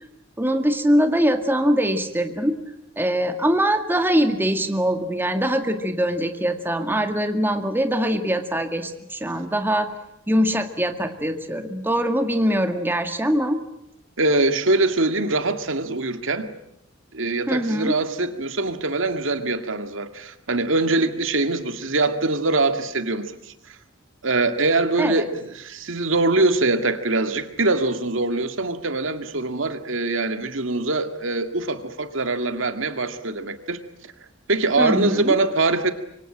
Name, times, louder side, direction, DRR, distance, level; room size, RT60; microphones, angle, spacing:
voice 1, 0.4-2.6 3.0-9.9 10.3-13.6 17.5-18.0 25.0-25.3 34.8-35.4, equal, 10° right, 6 dB, 2.0 m, -22 dB
voice 2, 14.2-16.5 17.1-23.3 24.2-34.1 34.5-35.9, right 2 dB, 70° right, 8 dB, 2.1 m, -23 dB
26.5 x 24.0 x 8.7 m, 0.80 s
head